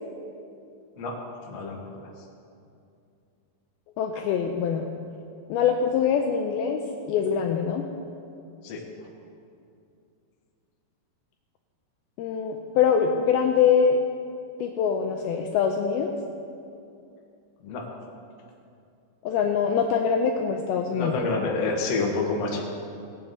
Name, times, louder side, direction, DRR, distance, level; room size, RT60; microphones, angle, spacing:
voice 1, 1.5-2.1 8.6-8.8 17.6-17.8 20.9-22.6, left 3 dB, 60° left, -1 dB, 1.8 m, -28 dB
voice 2, 4.0-4.9 5.5-6.8 7.1-7.8 12.2-14.0 14.6-16.2 19.2-21.1, left 7 dB, 85° left, 3 dB, 2.2 m, -23 dB
18.5 x 8.8 x 3.8 m, 2.5 s
omnidirectional pair, 4.9 m